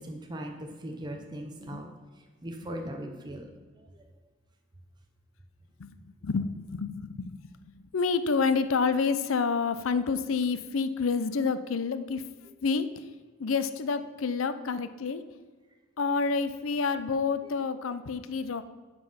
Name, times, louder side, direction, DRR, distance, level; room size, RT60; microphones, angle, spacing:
voice 1, 0.0-1.9 2.4-3.5 3.8-4.1, right 1 dB, 20° right, 2 dB, 0.8 m, -39 dB
voice 2, 6.2-12.2 12.6-13.1 13.4-15.2 16.0-18.6, left 5 dB, 80° left, 12 dB, 0.5 m, -29 dB
9.9 x 5.4 x 5.7 m, 1.4 s
head